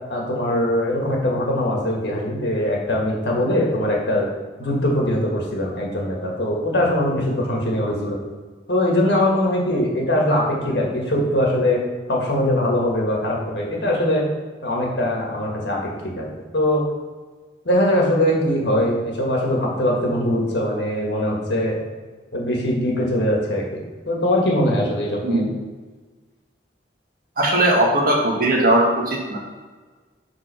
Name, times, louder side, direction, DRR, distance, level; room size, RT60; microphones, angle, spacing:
voice 1, 0.1-4.3 4.6-8.2 8.7-11.8 12.1-14.2 14.6-15.9 16.2-16.3 16.5-16.8 17.6-21.8 22.3-25.5, left 1 dB, 80° left, -2 dB, 1.6 m, -21 dB
voice 2, 27.4-29.4, right 1 dB, 55° right, -2 dB, 1.3 m, -18 dB
4.8 x 3.8 x 5.7 m, 1.4 s
head